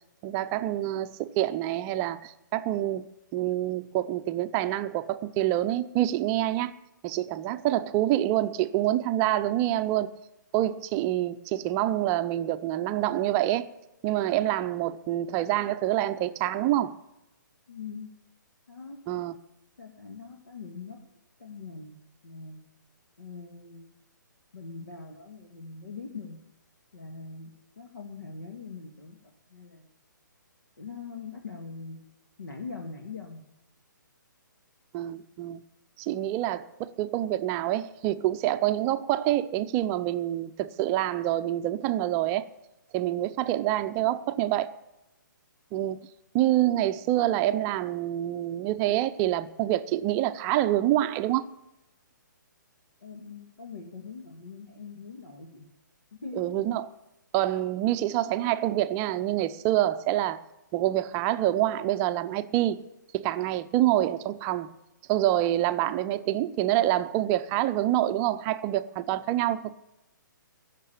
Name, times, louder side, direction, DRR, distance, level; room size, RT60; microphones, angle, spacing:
voice 1, 0.2-6.7 7.0-10.1 10.5-13.7 14.0-17.0 19.1-19.3 34.9-35.6 36.0-42.5 42.9-44.8 45.7-46.1 46.3-51.5 56.4-56.9 57.3-60.4 60.7-62.8 63.1-64.7 65.1-69.7, right 13 dB, 25° right, 0.6 m, -26 dB
voice 2, 17.7-18.1 18.7-19.0 19.8-21.0 21.4-22.0 22.2-22.6 23.2-23.9 24.5-26.4 26.9-29.9 30.8-32.0 32.4-33.4 53.0-55.7 56.1-56.4, left 4 dB, 80° left, 2.0 m, -42 dB
16.0 x 6.7 x 8.6 m
figure-of-eight pair, 135°, 11 cm